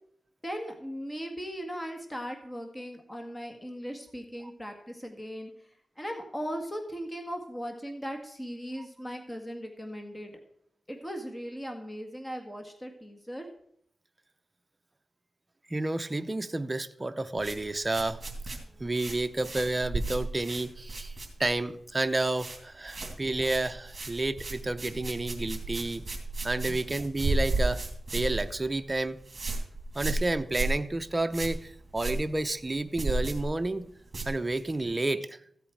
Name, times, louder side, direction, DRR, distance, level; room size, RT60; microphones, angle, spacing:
voice 1, 0.4-5.5 6.0-10.4 10.9-13.5 26.7-26.8, equal, 15° left, 4 dB, 1.8 m, -38 dB
voice 2, 15.7-18.2 18.8-21.1 21.4-26.0 26.4-27.8 28.1-29.2 29.9-33.9 34.2-35.4, right 2 dB, 25° right, 8 dB, 0.7 m, -30 dB
sound 1, 17.4-21.7 22.0-22.6 22.9-34.8, right 2 dB, 40° right, 2.8 m, -34 dB
15.0 x 8.3 x 4.7 m, 0.69 s
wide cardioid pair, 80°, 0 cm